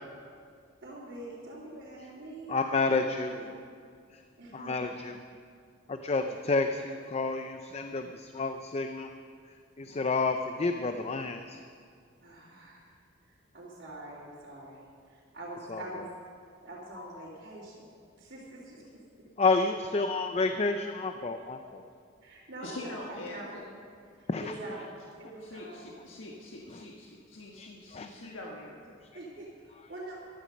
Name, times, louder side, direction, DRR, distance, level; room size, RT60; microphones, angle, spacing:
voice 1, 0.8-2.6 2.8-3.4 4.4-4.9 12.2-12.9 13.2-16.1 16.6-17.9 18.3-18.4 21.4-21.5 22.2-22.8 23.1-23.5 24.2-25.8 29.1-30.2, right 1 dB, 55° right, -10 dB, 3.1 m, -44 dB
voice 2, 2.5-3.3 4.1-4.2 4.5-5.2 5.9-9.1 9.8-11.6 15.7-15.8 17.0-17.3 19.4-21.6 24.3-24.4 26.7-26.8 27.6-28.1, left 3 dB, 35° left, 7 dB, 0.5 m, -30 dB
voice 3, 22.6-23.6 25.4-29.0, left 1 dB, 80° left, -2 dB, 1.5 m, -44 dB
15.0 x 12.5 x 5.3 m, 2.2 s
head